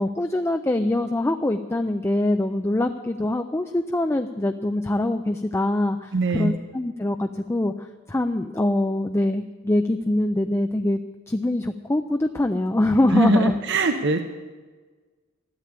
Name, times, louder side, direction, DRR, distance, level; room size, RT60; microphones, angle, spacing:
voice 1, 0.0-7.7 8.1-11.0 11.3-13.5, left 1 dB, 15° left, 6 dB, 0.4 m, -23 dB
voice 2, 6.1-6.5 13.1-14.2, right 2 dB, 60° right, 7 dB, 0.8 m, -22 dB
13.5 x 8.3 x 10.0 m, 1.4 s
head